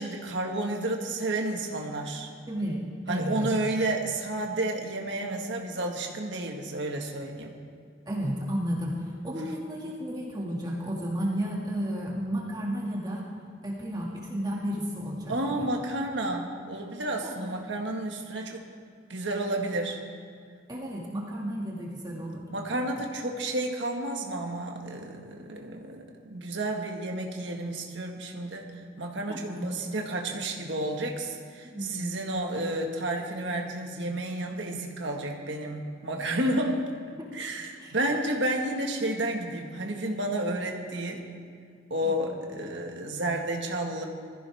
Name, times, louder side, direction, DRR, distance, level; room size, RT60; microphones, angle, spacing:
voice 1, 0.0-2.3 3.1-7.5 9.3-9.5 15.3-18.7 19.1-20.0 22.5-36.9 37.3-41.2 41.9-44.0, right 1 dB, 65° right, 1 dB, 1.8 m, -31 dB
voice 2, 2.5-3.5 8.1-13.3 13.6-15.7 17.2-17.6 20.7-22.4 29.3-29.6 31.6-32.0 37.2-37.3 37.8-38.0 42.0-42.2, equal, 20° right, -4 dB, 2.2 m, -33 dB
21.0 x 14.5 x 3.6 m, 2.2 s
head